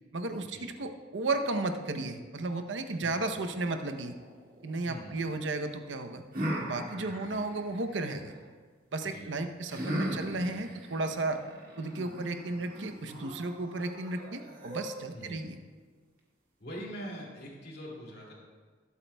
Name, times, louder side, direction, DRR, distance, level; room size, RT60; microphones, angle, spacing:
voice 1, 0.1-4.1 4.6-6.2 6.6-8.3 8.9-11.4 11.8-15.6, right 2 dB, 85° right, 7 dB, 0.7 m, -34 dB
sound 1, 3.1-5.3 6.3-8.4 9.7-15.3, equal, 45° right, 2.0 m, -39 dB
voice 2, 4.9-5.2 7.0-7.2 9.0-9.3 15.1-15.4 16.6-18.3, equal, 55° left, -3 dB, 2.4 m, -43 dB
18.5 x 8.3 x 2.3 m, 1.5 s
head